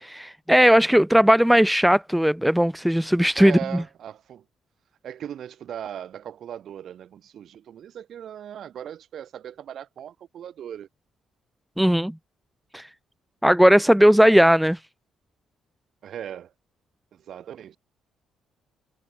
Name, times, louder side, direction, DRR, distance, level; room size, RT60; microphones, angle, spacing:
voice 1, 0.0-3.6 11.8-12.1 12.7-12.8 13.4-14.8, equal, 5° right, 0.4 m, -17 dB
voice 2, 3.4-4.4 5.0-10.9 16.0-16.5 17.1-17.8, right 10 dB, 55° right, 4.8 m, -38 dB
figure-of-eight pair, 45°, 0 cm